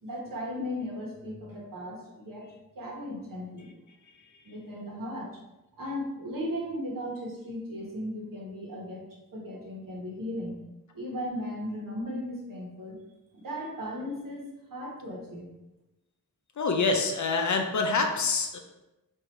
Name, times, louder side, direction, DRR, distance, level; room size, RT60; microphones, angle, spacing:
voice 1, 0.0-3.7 4.4-5.4 5.8-9.0 9.3-10.6 10.9-13.0 13.3-15.5, equal, 70° right, -3 dB, 1.2 m, -36 dB
voice 2, 16.6-18.6, left 4 dB, 55° left, 4 dB, 0.5 m, -26 dB
4.6 x 2.6 x 3.0 m, 0.98 s
wide cardioid pair, 140°, 35 cm